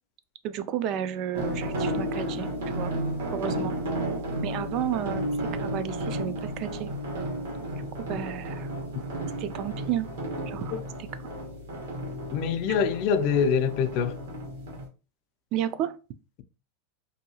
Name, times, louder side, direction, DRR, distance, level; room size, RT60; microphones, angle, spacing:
voice 1, 0.4-2.5 2.7-2.9 3.3-3.8 4.4-5.3 5.5-6.9 8.1-8.7 9.4-10.1 10.5-10.8 15.5-16.0, right 10 dB, 50° right, 0.3 m, -32 dB
sound 1, 1.3-14.9, right 1 dB, 85° right, 1.2 m, -33 dB
voice 2, 12.3-14.2, left 6 dB, 55° left, 0.4 m, -25 dB
2.7 x 2.3 x 2.8 m
supercardioid pair, 120°, 0 cm